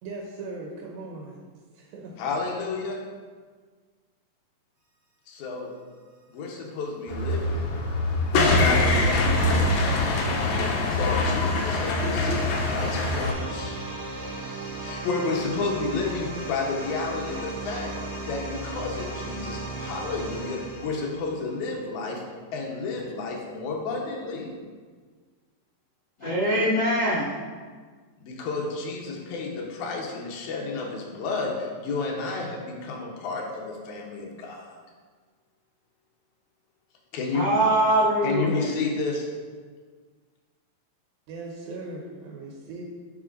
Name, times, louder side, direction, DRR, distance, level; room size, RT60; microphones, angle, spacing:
voice 1, 0.0-1.4 1.7-2.2 41.3-42.8, right 3 dB, 90° right, -1 dB, 2.5 m, -38 dB
voice 2, 2.2-3.0 5.3-5.7 6.3-7.6 8.5-10.1 10.9-13.8 14.8-22.2 22.5-24.5 28.2-34.8 37.1-37.5 38.2-39.3, left 3 dB, 70° left, -1 dB, 2.0 m, -31 dB
sound 1, 7.1-13.3, left 2 dB, 90° left, 1.5 m, -23 dB
sound 2, 7.9-21.8, right 2 dB, 70° right, 1.7 m, -37 dB
voice 3, 26.2-27.3 37.3-38.6, right 1 dB, 45° left, -9 dB, 1.7 m, -23 dB
9.6 x 4.2 x 2.5 m, 1.5 s
omnidirectional pair, 4.1 m